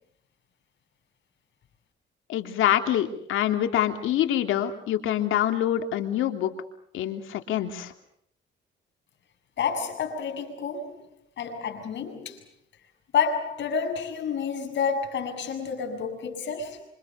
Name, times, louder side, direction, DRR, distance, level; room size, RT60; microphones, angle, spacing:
voice 1, 2.3-6.5 6.9-7.9, left 11 dB, 85° left, 3.1 m, -25 dB
voice 2, 9.6-11.1 11.4-12.4 13.1-16.9, left 6 dB, 65° left, 7.4 m, -29 dB
28.0 x 26.5 x 6.7 m
cardioid pair, 90°, 20 cm